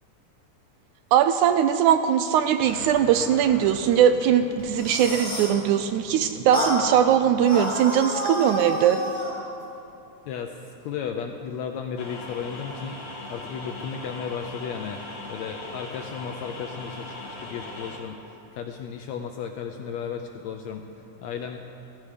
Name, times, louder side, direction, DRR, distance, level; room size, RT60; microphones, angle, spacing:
voice 1, 1.1-9.0, right 9 dB, 80° right, 9 dB, 1.8 m, -20 dB
sound 1, 2.6-7.7, left 2 dB, 30° left, 2.4 m, -44 dB
sound 2, 4.6-5.6 6.5-6.8 7.4-9.4, equal, 5° left, 2.7 m, -30 dB
voice 2, 10.3-10.6 10.8-13.0 13.3-15.0 15.3-20.8 21.2-21.6, left 7 dB, 80° left, 5 dB, 1.6 m, -34 dB
sound 3, 12.0-18.0, left 2 dB, 55° left, 3.1 m, -39 dB
15.5 x 14.5 x 5.1 m, 2.8 s
omnidirectional pair, 3.7 m